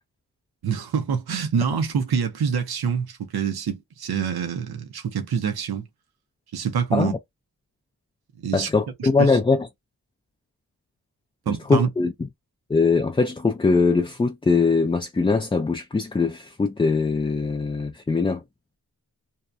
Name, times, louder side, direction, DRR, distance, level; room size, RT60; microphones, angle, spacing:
voice 1, 0.6-5.8 6.5-7.1 8.4-8.7 9.0-9.4 11.5-11.9, right 7 dB, 90° right, 0.7 m, -26 dB
voice 2, 8.5-9.7 11.5-12.3 12.7-18.4, left 4 dB, 15° left, 0.3 m, -22 dB
2.7 x 2.1 x 2.4 m
cardioid pair, 60°, 37 cm